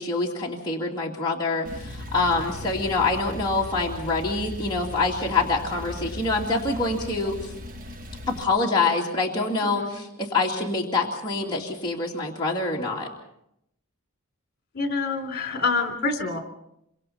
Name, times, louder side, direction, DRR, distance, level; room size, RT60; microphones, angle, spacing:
voice 1, 0.0-7.5 8.3-13.1, left 3 dB, 20° left, -4 dB, 2.5 m, -25 dB
Male speech man speaking / Car / Idling, 1.7-8.4, left 1 dB, 40° right, 1.4 m, -38 dB
voice 2, 14.7-16.4, left 4 dB, 50° left, 5 dB, 3.2 m, -26 dB
27.0 x 25.0 x 4.3 m, 0.76 s
head